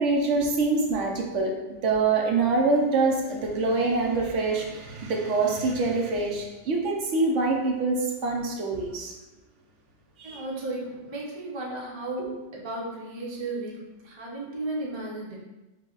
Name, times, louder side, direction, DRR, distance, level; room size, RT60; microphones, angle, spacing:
voice 1, 0.0-9.1 10.2-10.4, right 3 dB, 75° right, 0 dB, 1.0 m, -25 dB
voice 2, 10.2-15.4, right 2 dB, 25° right, -4 dB, 0.7 m, -34 dB
4.6 x 2.2 x 3.8 m, 1.1 s
omnidirectional pair, 1.3 m